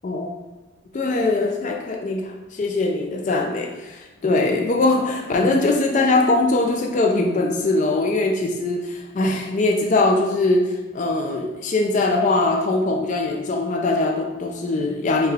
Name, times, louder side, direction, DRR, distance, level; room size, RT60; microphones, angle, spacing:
voice 1, 0.9-15.3, left 2 dB, 40° left, 2 dB, 0.3 m, -21 dB
5.4 x 2.3 x 3.4 m, 1.2 s
head